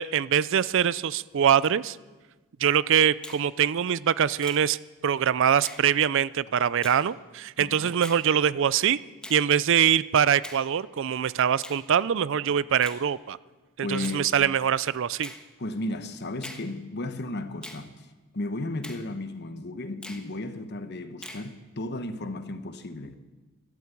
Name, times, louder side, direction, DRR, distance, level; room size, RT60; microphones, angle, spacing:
voice 1, 0.0-2.0 2.6-4.8 5.0-9.0 9.3-13.4 13.8-15.3, right 8 dB, 60° right, 0.4 m, -23 dB
Finger snapping, 3.2-3.5 4.4-4.6 5.6-5.9 6.8-7.0 8.0-8.2 9.2-9.4 10.4-10.7 11.6-11.8 12.8-13.0 14.0-14.2 15.2-15.4 16.4-16.7 17.6-17.8 18.8-19.0 20.0-20.3 21.2-21.5, left 1 dB, 5° left, 1.3 m, -42 dB
voice 2, 7.6-7.9 13.8-14.4 15.6-18.1 18.3-23.2, left 2 dB, 50° left, 1.1 m, -34 dB
13.0 x 12.5 x 8.4 m
head